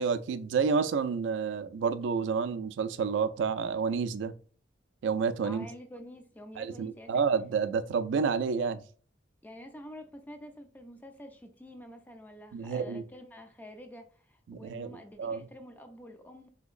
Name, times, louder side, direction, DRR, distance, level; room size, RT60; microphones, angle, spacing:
voice 1, 0.0-4.3 5.0-5.7 6.6-8.8 12.5-13.0 14.5-14.9 15.2-15.4, right 5 dB, 85° right, 0.3 m, -29 dB
voice 2, 5.4-7.2 9.4-16.5, equal, 10° left, 0.3 m, -48 dB
3.7 x 2.7 x 2.4 m
head